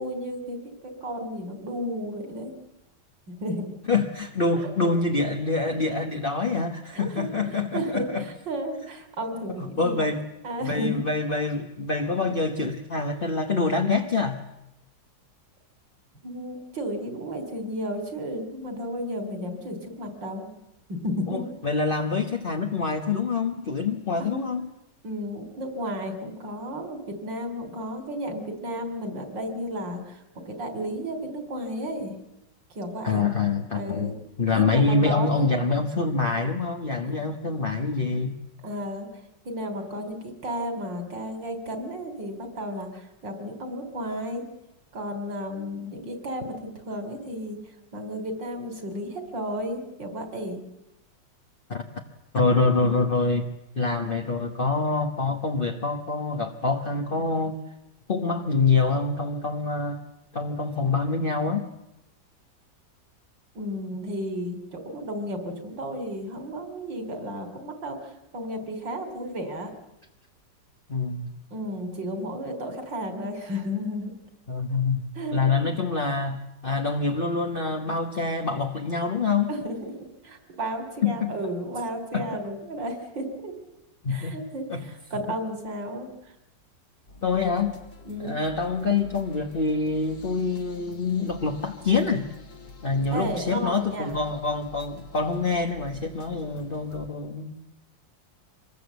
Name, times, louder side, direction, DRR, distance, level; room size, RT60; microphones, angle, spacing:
voice 1, 0.0-2.5 3.3-3.7 6.9-10.0 10.4-11.1 12.2-12.3 16.2-20.5 20.9-21.4 24.3-24.5 25.0-32.2 32.8-33.2 33.7-34.2 34.6-35.5 37.0-37.1 38.6-39.1 39.5-44.5 44.9-47.6 47.9-50.6 63.6-68.0 68.3-69.7 71.5-74.1 75.2-75.7 79.5-79.8 80.2-83.5 84.1-86.1 88.1-88.4 93.1-94.2, equal, 75° right, 7 dB, 4.1 m, -33 dB
voice 2, 3.9-8.2 9.5-10.2 10.6-14.4 21.3-24.7 33.0-34.1 34.4-38.3 51.7-51.8 52.3-53.5 53.7-57.6 58.1-60.0 60.3-61.6 70.9-71.3 74.5-79.5 81.0-81.3 82.1-82.4 84.0-84.4 84.7-84.8 87.2-87.8 88.2-92.3 92.8-97.7, left 4 dB, 30° left, 3 dB, 1.4 m, -26 dB
sound 1, 87.1-97.1, left 2 dB, 55° left, 2.5 m, -47 dB
25.5 x 21.0 x 8.2 m, 0.90 s
omnidirectional pair, 2.0 m